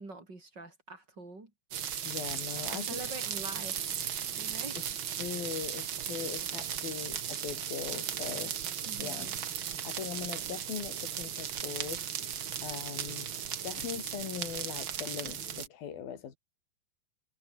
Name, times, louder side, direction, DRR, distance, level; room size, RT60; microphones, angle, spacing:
voice 1, 0.0-1.5 2.7-3.8 4.4-4.8 8.9-9.4, right 2 dB, 30° right, 5.1 m, -44 dB
sound 1, 1.7-15.7, right 9 dB, 50° right, 1.6 m, -36 dB
voice 2, 2.0-3.0 5.2-8.6 9.0-9.3 9.8-12.1 12.6-13.3 13.6-16.4, left 8 dB, 80° left, 4.6 m, -40 dB
omnidirectional pair, 4.1 m